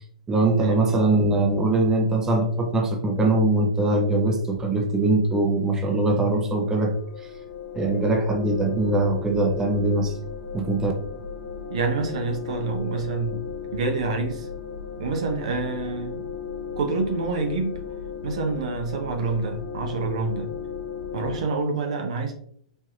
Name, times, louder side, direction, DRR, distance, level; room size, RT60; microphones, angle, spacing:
voice 1, 0.3-7.3 7.7-10.2 10.5-10.9, right 2 dB, 15° right, 2 dB, 0.6 m, -22 dB
sound 1, 6.6-21.4, left 6 dB, 65° left, 0.8 m, -35 dB
voice 2, 11.7-14.5 15.0-16.2 16.8-17.8 18.2-20.5 21.1-22.3, right 4 dB, 65° right, 4 dB, 0.7 m, -27 dB
4.4 x 2.8 x 2.5 m, 0.62 s
hypercardioid pair, 110°, 4 cm